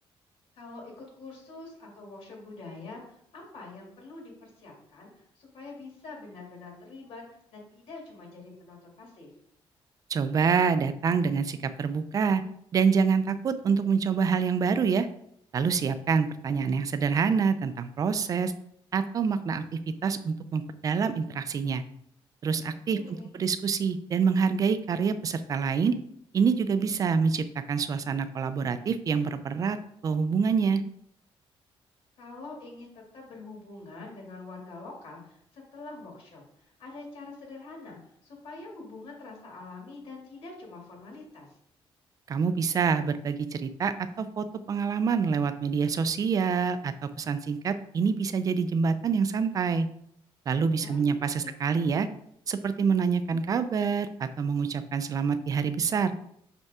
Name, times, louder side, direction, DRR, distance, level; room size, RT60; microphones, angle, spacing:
voice 1, 0.6-7.2 7.5-9.3 22.6-23.3 32.2-41.6 50.7-51.0 51.4-51.6, left 3 dB, 70° left, -2 dB, 2.4 m, -45 dB
voice 2, 10.1-12.4 12.7-15.1 15.5-18.5 18.9-19.6 20.0-21.8 22.4-23.0 23.3-25.9 26.3-29.8 30.0-30.8 42.3-49.9 50.5-52.1 52.5-56.1, right 5 dB, 35° right, 11 dB, 0.4 m, -26 dB
6.1 x 5.3 x 3.6 m, 0.70 s
cardioid pair, 170°, 10 cm